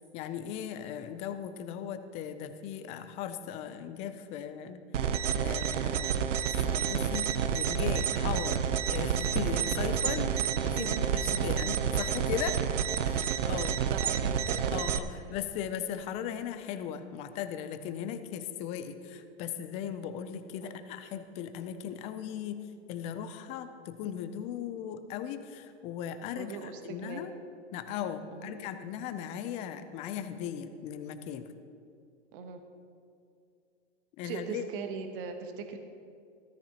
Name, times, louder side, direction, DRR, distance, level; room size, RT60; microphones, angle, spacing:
voice 1, 0.1-5.1 5.4-6.2 6.6-12.6 13.0-13.9 14.7-27.3 27.7-31.4 34.2-34.6, left 9 dB, 20° left, 10 dB, 0.4 m, -38 dB
sound 1, 4.9-15.0, right 8 dB, 90° right, 0.7 m, -29 dB
voice 2, 13.9-15.2 20.6-20.7 26.4-27.3 28.3-28.5 32.3-32.6 34.2-35.8, right 5 dB, 50° right, 6 dB, 1.2 m, -40 dB
13.5 x 13.5 x 2.9 m, 2.5 s
hypercardioid pair, 135°, 35 cm